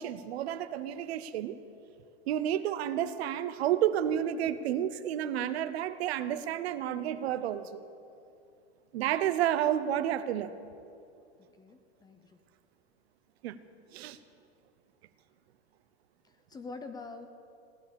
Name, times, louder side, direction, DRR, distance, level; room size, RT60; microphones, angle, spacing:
voice 1, 0.0-1.6 2.3-7.8 8.9-10.6 13.4-13.6 13.9-14.2, right 11 dB, 65° right, 12 dB, 0.8 m, -30 dB
voice 2, 11.6-12.4 16.2-17.3, left 3 dB, 10° left, 8 dB, 0.6 m, -45 dB
17.0 x 9.9 x 7.0 m, 2.5 s
supercardioid pair, 145°, 34 cm